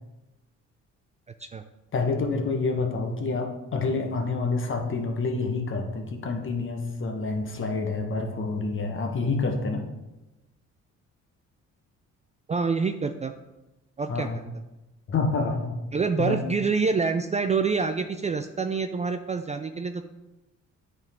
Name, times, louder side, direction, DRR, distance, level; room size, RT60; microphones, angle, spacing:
voice 1, 1.9-9.8 14.1-14.4 15.1-15.7 16.2-16.4, left 3 dB, 40° left, 3 dB, 1.2 m, -28 dB
voice 2, 12.5-13.3 14.0-14.3 15.9-20.1, right 4 dB, 25° right, 7 dB, 0.3 m, -26 dB
9.0 x 3.9 x 3.6 m, 1.0 s
cardioid pair, 90°, 30 cm